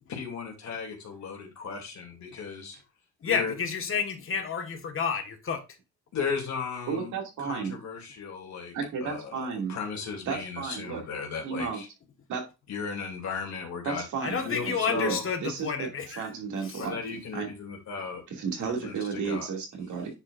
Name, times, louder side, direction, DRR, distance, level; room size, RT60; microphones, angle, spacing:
voice 1, 0.1-2.8 3.2-3.5 6.1-7.1 7.4-8.7 9.0-11.9 12.7-14.0 14.4-15.2 16.8-18.2 18.8-19.5, left 5 dB, 65° left, 2.7 m, -36 dB
voice 2, 3.2-5.6 14.2-16.3 16.6-16.8, left 6 dB, 45° left, 1.6 m, -30 dB
voice 3, 6.9-7.8 8.7-9.8 10.3-11.0 11.4-11.8 12.3-12.4 13.8-17.0 17.3-17.5 18.3-20.1, right 5 dB, 75° right, 2.5 m, -33 dB
9.7 x 4.8 x 2.6 m
cardioid pair, 90°, 30 cm